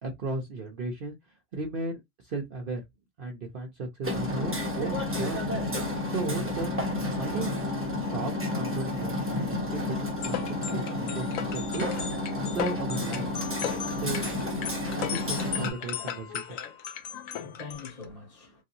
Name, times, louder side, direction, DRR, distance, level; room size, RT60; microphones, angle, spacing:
voice 1, 0.0-1.1 1.5-2.8 3.2-5.5 6.1-6.8 7.1-7.6 8.0-11.9 12.4-13.3 13.9-14.3 14.9-16.6, right 3 dB, 55° right, 0.7 m, -35 dB
Hammer, 4.0-15.7, left 2 dB, 15° right, 0.6 m, -31 dB
sound 1, 10.2-18.0, left 9 dB, 85° left, 1.0 m, -37 dB
voice 2, 16.9-18.6, left 4 dB, 30° left, 1.3 m, -47 dB
3.2 x 2.6 x 2.7 m
omnidirectional pair, 1.4 m